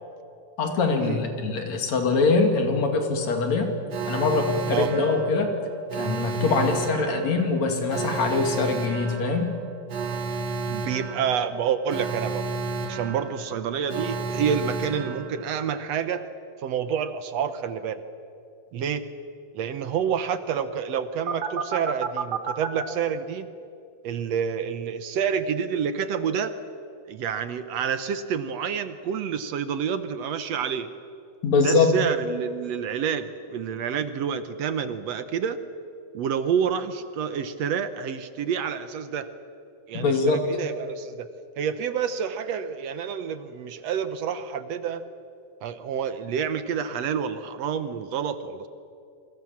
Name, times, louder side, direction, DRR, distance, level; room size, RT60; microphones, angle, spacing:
voice 1, 0.6-3.7 4.1-5.5 6.0-9.5 31.4-31.9 39.9-40.5, left 4 dB, 60° left, 4 dB, 3.6 m, -23 dB
Alarm, 3.9-15.8 21.3-22.8, right 4 dB, 45° right, 1.5 m, -31 dB
voice 2, 10.7-12.5 12.9-16.3 16.6-18.0 18.7-19.0 19.5-23.5 24.0-26.5 27.1-30.9 31.6-35.6 36.1-39.3 39.9-41.3 41.6-45.0 45.6-48.7, right 7 dB, 65° right, 11 dB, 1.9 m, -28 dB
27.0 x 25.0 x 7.2 m, 2.5 s
omnidirectional pair, 3.7 m